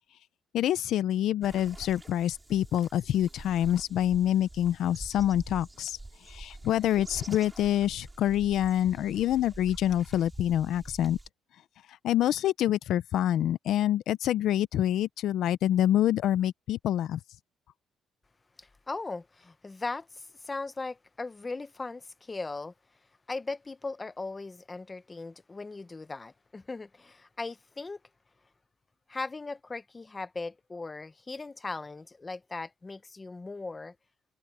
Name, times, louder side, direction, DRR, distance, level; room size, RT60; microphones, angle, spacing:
voice 1, 0.5-6.0 6.3-11.2 12.0-17.2, left 11 dB, 70° left, 0.6 m, -26 dB
sound 1, 1.4-11.3, right 2 dB, 10° right, 6.0 m, -46 dB
voice 2, 18.6-22.7 23.3-28.0 29.1-33.9, left 3 dB, 20° left, 0.9 m, -38 dB
cardioid pair, 150°, 0 cm